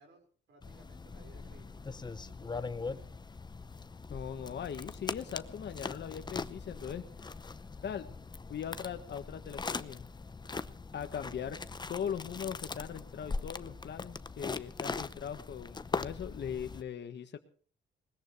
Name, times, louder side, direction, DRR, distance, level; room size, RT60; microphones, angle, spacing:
voice 1, 0.0-3.1 10.4-10.7, right 4 dB, 70° right, 3 dB, 5.3 m, -61 dB
sound 1, 0.6-16.8, left 4 dB, 20° left, 0.8 m, -41 dB
voice 2, 4.1-7.0 7.8-8.1 8.5-10.0 10.9-11.6 11.9-17.4, left 8 dB, 60° left, 6 dB, 1.5 m, -40 dB
21.0 x 20.0 x 3.2 m, 0.43 s
cardioid pair, 115°, 20 cm